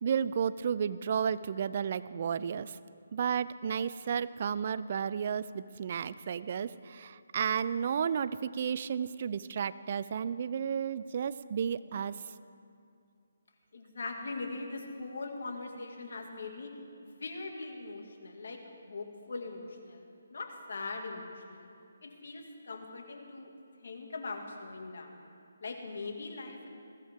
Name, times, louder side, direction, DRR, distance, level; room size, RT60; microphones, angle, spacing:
voice 1, 0.0-2.8 3.1-12.2, right 7 dB, 40° right, 16 dB, 0.4 m, -32 dB
voice 2, 13.7-16.7 17.0-20.0 20.3-21.7 22.0-23.5 23.8-25.3 25.6-26.7, left 3 dB, 65° left, 3 dB, 2.2 m, -41 dB
20.5 x 15.0 x 3.7 m, 2.4 s
hypercardioid pair, 160°, 0 cm